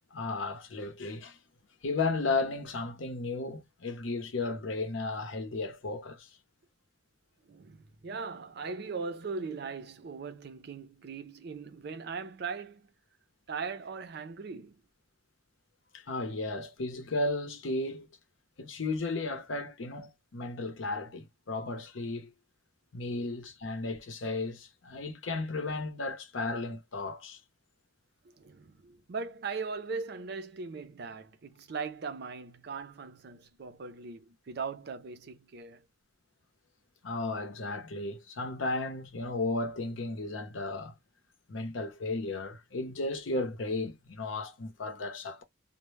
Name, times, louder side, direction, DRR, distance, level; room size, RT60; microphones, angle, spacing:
voice 1, 0.1-1.4 1.8-6.3 15.9-18.1 18.6-22.3 22.9-27.4 37.0-41.0 41.5-45.4, left 3 dB, 75° left, 0.7 m, -34 dB
voice 2, 7.4-12.9 13.5-14.8 23.1-23.3 28.2-35.9, right 4 dB, 55° right, 0.5 m, -39 dB
2.1 x 2.0 x 3.1 m
head